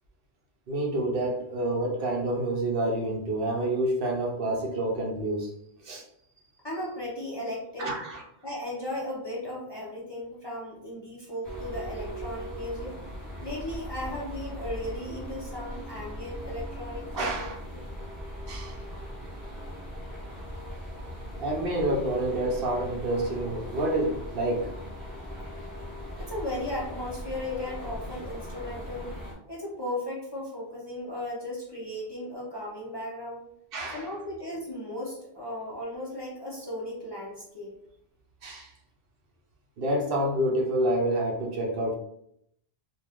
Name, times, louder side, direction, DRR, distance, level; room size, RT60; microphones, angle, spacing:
voice 1, 0.7-5.5 5.8-6.0 7.8-8.2 17.2-17.6 18.5-18.8 21.4-24.7 27.5-27.7 33.7-34.1 38.4-38.7 39.8-41.9, right 1 dB, 65° right, -1 dB, 0.9 m, -28 dB
voice 2, 6.6-7.9 8.4-13.0 13.4-17.5 26.2-29.1 29.5-33.4 33.9-37.7, left 1 dB, 30° left, -5 dB, 0.6 m, -36 dB
sound 1, 11.4-29.3, equal, ahead, 1.3 m, -39 dB
2.5 x 2.4 x 3.4 m, 0.73 s
omnidirectional pair, 1.1 m